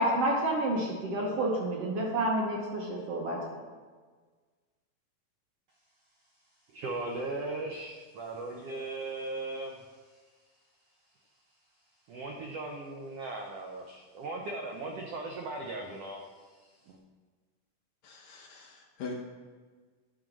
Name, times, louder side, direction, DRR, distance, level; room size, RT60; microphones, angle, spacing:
voice 1, 0.0-3.4, right 1 dB, 65° right, -2 dB, 1.7 m, -29 dB
voice 2, 6.7-10.2 12.1-17.0, right 2 dB, 80° right, 1 dB, 1.3 m, -38 dB
voice 3, 18.0-19.1, left 4 dB, 70° left, 0 dB, 1.8 m, -42 dB
11.0 x 3.9 x 6.1 m, 1.4 s
omnidirectional pair, 3.8 m